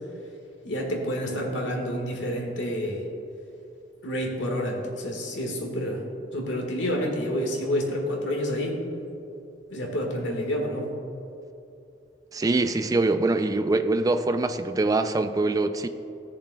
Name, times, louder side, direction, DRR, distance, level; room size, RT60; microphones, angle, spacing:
voice 1, 0.6-3.0 4.0-6.0 6.3-8.8 9.7-10.9, equal, 90° left, 0 dB, 1.6 m, -28 dB
voice 2, 12.3-15.9, right 2 dB, 20° right, 9 dB, 0.3 m, -24 dB
16.5 x 6.8 x 2.2 m, 2.7 s
head